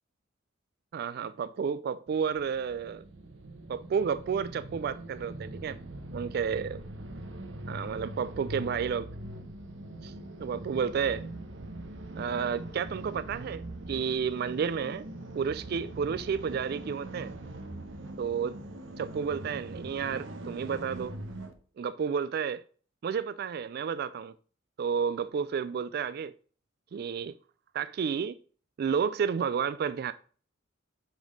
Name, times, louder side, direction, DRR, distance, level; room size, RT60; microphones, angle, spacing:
voice 1, 0.9-3.0 3.7-5.8 6.1-6.8 7.7-9.1 10.0-10.1 10.4-11.3 12.2-15.0 15.3-17.3 18.2-18.6 19.0-21.1 21.8-22.6 23.0-24.3 24.8-26.3 26.9-27.3 27.7-28.4 28.8-30.1, right 6 dB, 55° right, 0.3 m, -31 dB
sound 1, 2.1-21.5, right 1 dB, 80° right, 1.0 m, -42 dB
6.1 x 5.2 x 5.1 m
head